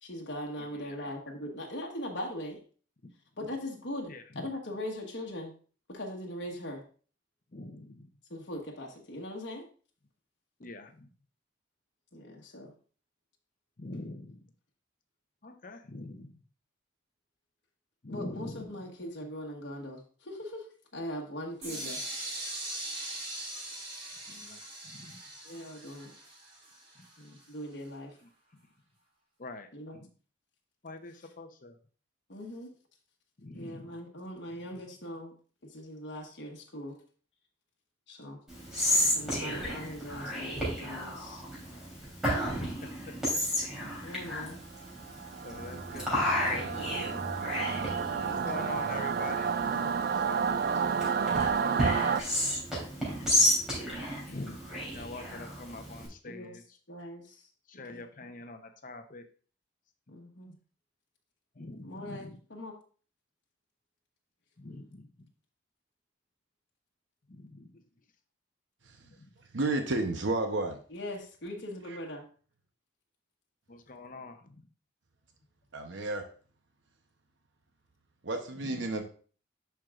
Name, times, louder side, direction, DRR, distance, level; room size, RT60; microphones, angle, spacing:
voice 1, 0.0-2.6 3.4-5.5 5.9-6.8 8.3-9.7 12.1-12.7 18.1-20.7 20.9-22.1 25.4-26.1 27.2-28.2 29.7-30.0 31.2-31.3 32.3-32.7 33.5-35.3 35.6-37.0 38.1-38.4 39.0-41.4 44.0-44.6 48.1-48.4 48.7-48.9 55.0-55.4 56.2-56.6 56.9-57.5 57.9-58.0 60.1-60.6 61.8-62.8 70.9-72.2, left 1 dB, 60° left, -1 dB, 1.3 m, -41 dB
voice 2, 4.1-4.5 7.5-8.1 10.6-11.1 13.8-14.4 15.4-16.4 18.0-18.7 24.3-25.2 29.4-30.1 30.8-31.7 33.4-34.0 39.2-39.4 42.6-43.2 45.4-47.4 48.2-50.5 51.2-52.2 53.2-53.3 54.3-54.6 54.9-56.6 57.7-59.3 61.6-62.4 64.6-65.1 67.3-67.8 69.2-69.3 73.9-74.4 78.7-78.9, left 2 dB, 45° left, 7 dB, 0.8 m, -44 dB
sound 1, 21.6-27.4, right 1 dB, 30° right, 2.6 m, -41 dB
Whispering, 38.5-56.1, left 1 dB, ahead, 3.4 m, -32 dB
Singing / Musical instrument, 45.0-52.2, right 6 dB, 50° right, 0.3 m, -31 dB
voice 3, 69.5-70.8 71.9-72.0 75.7-76.3 78.2-79.0, right 2 dB, 70° right, 4 dB, 0.8 m, -31 dB
11.0 x 4.6 x 2.5 m, 0.40 s
head